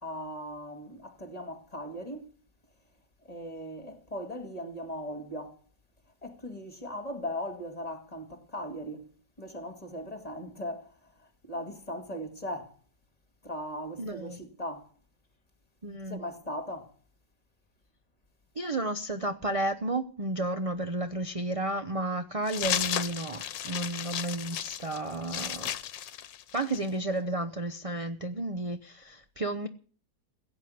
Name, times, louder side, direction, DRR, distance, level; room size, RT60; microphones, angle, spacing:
voice 1, 0.0-2.3 3.2-5.6 6.2-9.1 9.4-12.8 13.4-14.9 16.1-16.9, equal, 20° left, 2.2 m, -38 dB
voice 2, 14.0-14.4 15.8-16.2 18.6-25.7 26.5-29.7, right 2 dB, 40° right, 0.5 m, -32 dB
sound 1, 22.5-26.9, left 10 dB, 80° left, 1.6 m, -34 dB
16.5 x 8.4 x 9.4 m
omnidirectional pair, 2.0 m